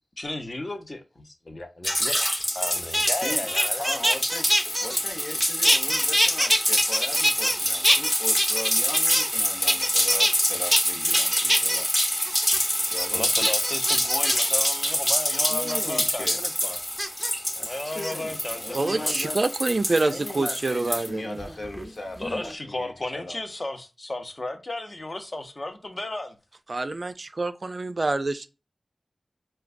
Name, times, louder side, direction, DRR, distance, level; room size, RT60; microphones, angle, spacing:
voice 1, 0.2-2.3 2.5-3.9 13.1-16.8 17.6-19.2 22.2-26.4, left 2 dB, 40° left, 0.7 m, -34 dB
sound 1, 1.8-21.1, equal, 20° left, 0.9 m, -26 dB
sound 2, 2.6-5.4 5.6-7.6 7.8-9.4 9.7-10.3 10.7-10.8 11.1-11.8 12.3-12.6 13.0-13.1 13.4-14.5 15.3-15.7 17.0-17.3 17.9-18.1 18.7-19.3 20.7-21.9 22.2-22.5, equal, ahead, 0.6 m, -25 dB
voice 2, 3.8-4.5 4.8-11.9 12.9-13.3 15.3-16.4 17.5-19.4 20.0-23.4, left 2 dB, 75° left, 0.8 m, -38 dB
voice 3, 18.7-21.4 26.7-28.5, right 2 dB, 50° right, 0.3 m, -26 dB
4.4 x 2.2 x 2.5 m
wide cardioid pair, 70°, 0 cm